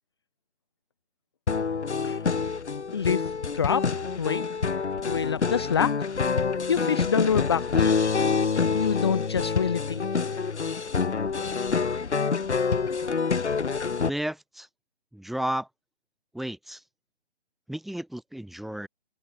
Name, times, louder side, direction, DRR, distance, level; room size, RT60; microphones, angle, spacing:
sound 1, 1.5-14.1, left 5 dB, 80° left, 0.8 m, -27 dB
voice 1, 2.9-4.4 4.7-6.1 6.7-8.1 8.6-10.0, left 7 dB, 25° left, 0.8 m, -27 dB
voice 2, 14.0-14.7 15.1-15.7 16.3-16.8 17.7-18.9, right 1 dB, ahead, 2.4 m, -33 dB
open air
figure-of-eight pair, 150°, 34 cm